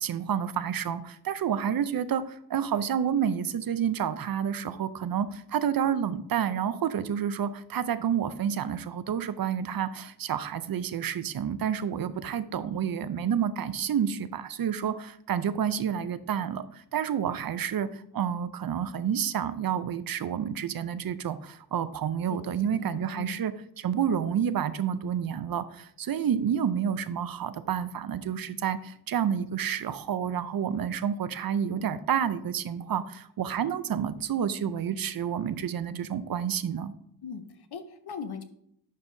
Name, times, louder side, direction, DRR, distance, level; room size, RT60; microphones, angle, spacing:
voice 1, 0.0-36.9, right 8 dB, 60° right, 14 dB, 0.5 m, -29 dB
voice 2, 22.3-23.4 37.2-38.4, left 6 dB, 70° left, 9 dB, 0.8 m, -40 dB
10.5 x 5.5 x 2.6 m, 0.72 s
wide cardioid pair, 110°, 40 cm